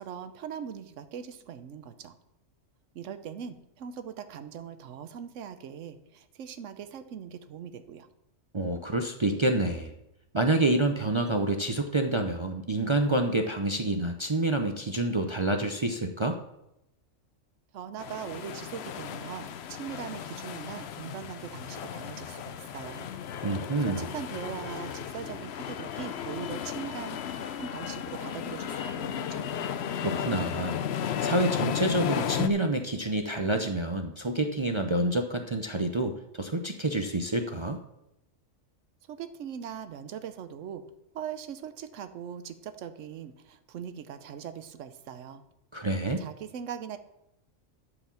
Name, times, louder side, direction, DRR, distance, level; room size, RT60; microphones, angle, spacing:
voice 1, 0.0-2.2 2.9-8.1 17.7-23.1 23.5-29.4 39.1-40.8 41.1-45.4 46.2-47.0, right 8 dB, 70° right, 11 dB, 1.1 m, -41 dB
voice 2, 8.5-9.9 10.3-16.4 23.4-24.1 29.9-30.8 31.2-37.8 45.7-46.2, right 2 dB, 35° right, 5 dB, 0.5 m, -28 dB
sound 1, 18.0-32.5, left 9 dB, 60° left, 0.8 m, -34 dB
11.0 x 5.0 x 7.0 m, 0.86 s
omnidirectional pair, 1.4 m